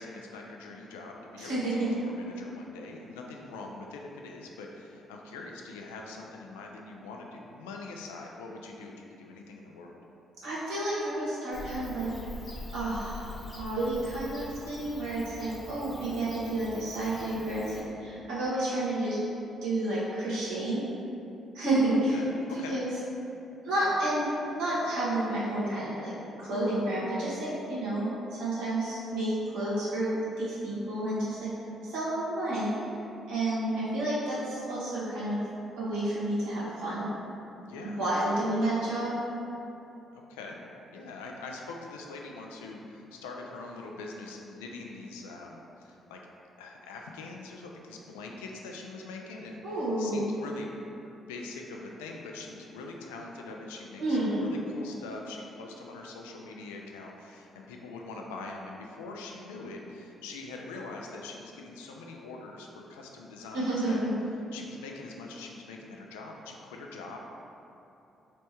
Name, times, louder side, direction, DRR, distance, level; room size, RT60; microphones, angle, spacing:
voice 1, 0.0-10.0 22.1-22.8 37.6-38.0 38.4-38.5 40.1-40.6 40.9-46.2 46.6-50.8 51.1-64.0 64.5-67.2, left 3 dB, 85° left, 0 dB, 0.3 m, -43 dB
voice 2, 1.4-1.7 10.4-12.1 12.7-19.2 19.6-20.8 21.5-22.2 22.7-22.9 23.6-24.3 24.5-26.1 26.4-31.5 31.8-32.7 33.3-35.4 35.8-37.1 37.8-39.1 49.6-50.3 54.0-54.5 63.5-63.9, right 1 dB, 75° right, -10 dB, 1.1 m, -30 dB
Bird / Cricket, 11.5-17.8, left 2 dB, 40° left, 0.6 m, -44 dB
3.3 x 3.2 x 2.9 m, 2.9 s
hypercardioid pair, 45°, 0 cm